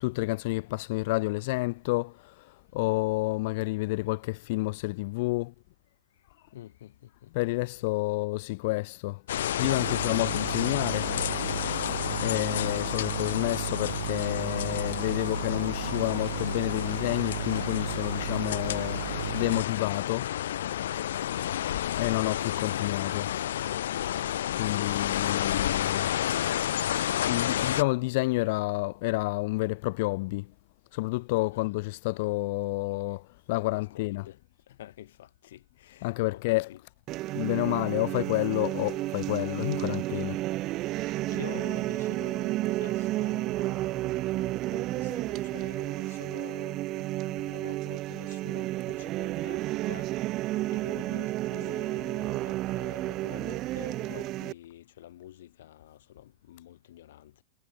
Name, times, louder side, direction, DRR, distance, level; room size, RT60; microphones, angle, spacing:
voice 1, 0.0-5.5 7.3-9.2 9.6-11.1 12.2-19.0 19.3-20.3 22.0-23.3 24.6-26.1 27.3-30.5 30.9-34.3 36.0-36.7 37.3-40.4, left 23 dB, 45° left, 0.5 m, -29 dB
voice 2, 6.5-6.9 7.2-7.3 7.8-7.9 12.1-12.4 21.4-22.3 31.5-31.7 33.7-34.4 34.8-36.8 41.0-50.1 50.7-57.4, left 13 dB, 70° left, 4.3 m, -48 dB
sound 1, 9.3-27.8, left 11 dB, 90° left, 2.0 m, -31 dB
sound 2, 9.6-19.6, right 14 dB, 65° right, 1.1 m, -35 dB
sound 3, 37.1-54.5, right 17 dB, 25° right, 0.6 m, -31 dB
supercardioid pair, 175°, 0 cm